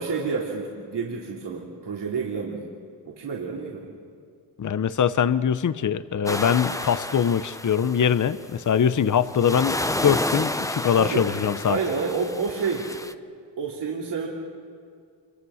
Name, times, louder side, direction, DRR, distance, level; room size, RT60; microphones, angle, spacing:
voice 1, 0.0-2.6 3.1-3.9 11.0-11.3 11.6-12.9 13.6-14.3, right 5 dB, 65° right, -3 dB, 3.4 m, -29 dB
voice 2, 4.6-11.8, left 8 dB, 45° left, 13 dB, 1.0 m, -22 dB
sound 1, 6.3-8.4 9.0-13.1, left 1 dB, 5° left, 1.1 m, -31 dB
27.0 x 24.0 x 6.5 m, 2.2 s
supercardioid pair, 60°, 43 cm